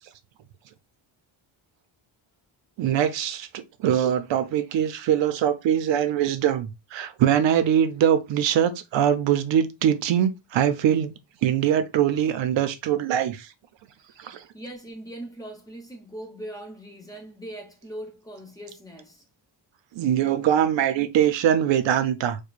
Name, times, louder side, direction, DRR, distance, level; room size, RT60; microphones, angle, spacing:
voice 1, 2.8-11.1 11.4-13.5 14.2-14.4 19.9-22.4, right 9 dB, 70° right, 0.6 m, -22 dB
voice 2, 14.0-19.2, right 1 dB, 10° left, 1.0 m, -40 dB
4.7 x 2.2 x 2.4 m
cardioid pair, 145°, 47 cm